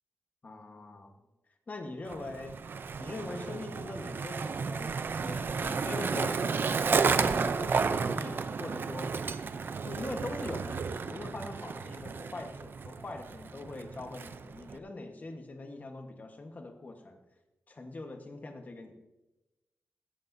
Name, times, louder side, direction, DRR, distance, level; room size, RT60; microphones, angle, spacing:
voice 1, 0.4-1.2 1.7-2.5 3.0-6.7 7.2-9.1 9.8-17.2 17.7-19.0, left 2 dB, 35° left, 5 dB, 1.2 m, -42 dB
Skateboard, 2.1-14.8, right 5 dB, 50° right, 0.5 m, -32 dB
16.5 x 13.5 x 2.7 m, 1.0 s
wide cardioid pair, 165°, 5 cm